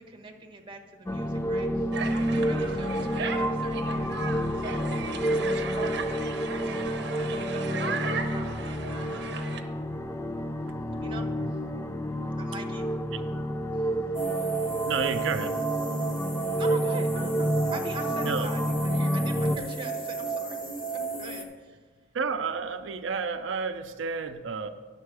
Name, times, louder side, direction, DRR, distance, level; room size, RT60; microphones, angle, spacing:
voice 1, 0.0-1.8 2.2-6.2 6.6-9.5 11.0-11.3 12.4-12.8 13.7-13.9 16.6-20.5 20.9-21.8, right 2 dB, 25° right, 4 dB, 1.0 m, -42 dB
sound 1, 1.1-19.6, equal, 15° left, 0.3 m, -29 dB
sound 2, 1.9-9.6, right 5 dB, 60° right, 0.8 m, -36 dB
sound 3, 14.1-21.4, right 5 dB, 45° left, 1.2 m, -33 dB
voice 2, 14.9-15.6 18.2-18.5 22.1-24.7, right 5 dB, 90° right, 7 dB, 0.5 m, -30 dB
10.5 x 6.7 x 4.8 m, 1.4 s
head